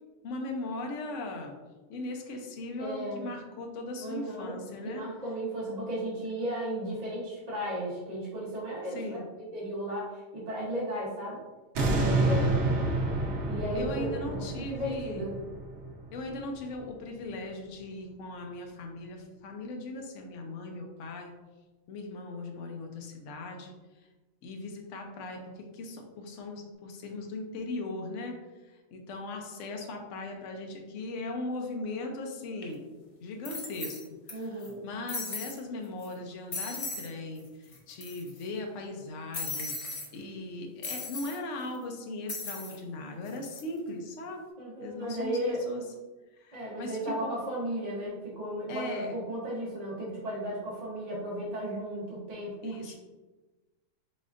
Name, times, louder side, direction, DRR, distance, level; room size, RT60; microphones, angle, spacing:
voice 1, 0.2-1.5 1.9-5.0 8.9-9.2 12.2-12.5 13.7-15.2 16.1-21.3 21.9-23.7 24.4-28.3 28.7-32.8 33.2-34.0 34.4-44.5 44.8-45.8 46.4-47.4 48.7-49.1 52.6-52.9, left 2 dB, 65° left, 2 dB, 1.0 m, -39 dB
voice 2, 2.8-3.2 4.0-9.0 9.4-11.4 11.9-12.4 13.5-15.4 34.3-34.8 44.6-45.6 46.5-52.9, right 1 dB, 35° right, -7 dB, 0.9 m, -35 dB
sound 1, 11.7-16.9 17.3-17.4, right 2 dB, 60° right, 0.9 m, -29 dB
sound 2, 32.6-32.7 33.4-34.3 34.6-34.7 35.1-35.6 36.0-36.1 36.5-37.1 37.4-37.5 37.7-38.4 39.3-40.1 40.8-41.4 42.3-42.8 43.3-43.6, left 3 dB, 45° left, 0.4 m, -37 dB
4.1 x 3.7 x 2.4 m, 1.2 s
omnidirectional pair, 1.4 m